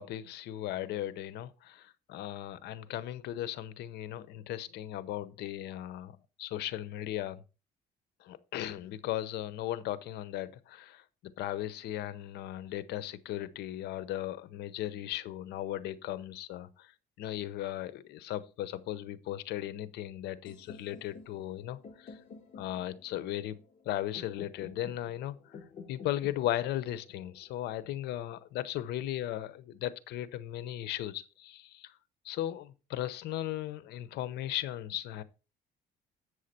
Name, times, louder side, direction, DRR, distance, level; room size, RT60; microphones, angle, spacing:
voice 1, 0.0-7.4 8.2-16.9 17.2-22.2 22.6-25.6 25.9-31.9 32.2-35.2, left 13 dB, 80° left, 0.8 m, -37 dB
sound 1, 20.5-28.4, left 5 dB, 45° left, 4.1 m, -51 dB
8.4 x 6.4 x 4.2 m
cardioid pair, 110°, 17 cm